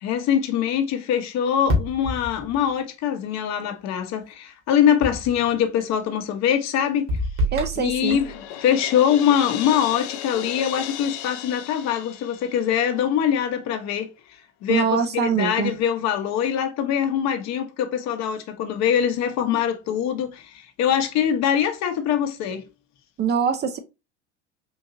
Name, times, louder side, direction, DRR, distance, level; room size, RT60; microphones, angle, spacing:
voice 1, 0.0-7.1 7.8-14.1 14.6-22.6, left 9 dB, 50° left, 0.9 m, -23 dB
sound 1, 1.7-2.7 5.0-5.6 7.1-8.4, equal, 60° right, 1.6 m, -27 dB
voice 2, 7.5-8.2 14.7-15.7 23.2-23.8, right 7 dB, 30° right, 0.5 m, -23 dB
Crash cymbal, 8.1-13.0, left 11 dB, 75° left, 0.6 m, -35 dB
3.8 x 2.7 x 2.5 m
hypercardioid pair, 85°, 34 cm